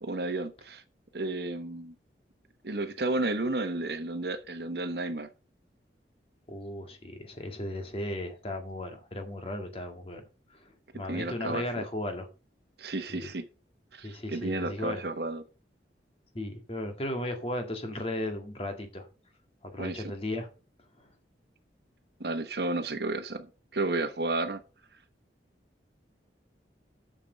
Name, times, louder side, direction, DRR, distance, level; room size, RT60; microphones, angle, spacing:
voice 1, 0.0-0.8 1.1-1.9 2.6-5.3 11.1-11.8 12.8-13.5 13.9-15.4 19.8-20.1 22.2-24.6, right 2 dB, 65° right, 1.1 m, -32 dB
voice 2, 6.5-10.2 10.5-12.3 13.1-13.3 14.0-15.0 16.3-19.1 19.7-20.5 21.0-21.1, left 1 dB, 35° left, 1.8 m, -36 dB
7.2 x 6.9 x 6.7 m
head